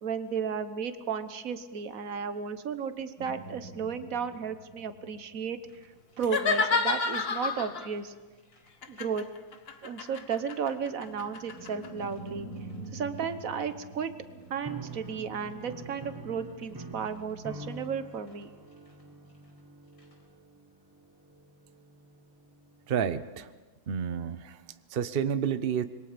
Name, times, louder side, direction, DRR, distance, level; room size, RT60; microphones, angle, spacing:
voice 1, 0.0-5.6 6.2-8.1 8.9-9.2 9.8-12.5 12.9-14.1 14.5-18.5, right 6 dB, 50° right, 11 dB, 1.3 m, -34 dB
sound 1, 3.2-6.3 6.6-7.6 7.9-8.1 8.4-9.2 9.5-9.8 10.3-19.6 20.0-20.1, right 2 dB, 65° left, 5.2 m, -48 dB
sound 2, 6.2-7.9 8.8-11.9, left 5 dB, 40° left, 1.0 m, -30 dB
sound 3, 14.6-22.9, right 2 dB, 20° right, 0.7 m, -47 dB
voice 2, 22.9-23.5 23.9-24.6 24.9-25.8, right 8 dB, 90° right, 12 dB, 0.5 m, -30 dB
26.5 x 22.0 x 5.2 m, 1.3 s
omnidirectional pair, 2.2 m